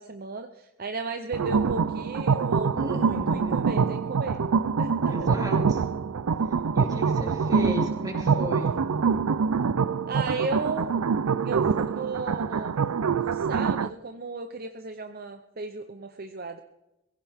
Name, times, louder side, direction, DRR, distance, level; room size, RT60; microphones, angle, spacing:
voice 1, 0.0-4.4 4.8-5.3 7.5-7.8 10.1-10.9 11.4-12.7 13.1-16.6, right 3 dB, 40° right, 8 dB, 0.7 m, -35 dB
sound 1, 1.3-13.9, right 5 dB, 80° right, 0.5 m, -25 dB
voice 2, 2.7-3.8 5.0-5.8 6.7-8.8, equal, 15° right, 0 dB, 3.3 m, -34 dB
22.0 x 16.0 x 3.6 m, 0.94 s
head